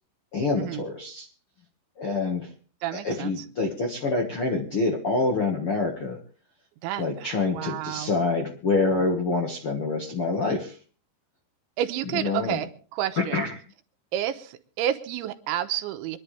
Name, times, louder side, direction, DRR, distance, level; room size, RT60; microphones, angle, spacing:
voice 1, 0.3-1.3 2.0-2.5 2.9-6.2 7.0-10.8 12.1-12.6 13.2-13.5, left 3 dB, 60° left, 1 dB, 1.4 m, -26 dB
voice 2, 2.8-3.3 6.8-8.1 11.8-13.4 14.1-16.2, right 12 dB, 85° right, 9 dB, 3.4 m, -30 dB
25.5 x 11.0 x 3.4 m, 0.39 s
omnidirectional pair, 5.2 m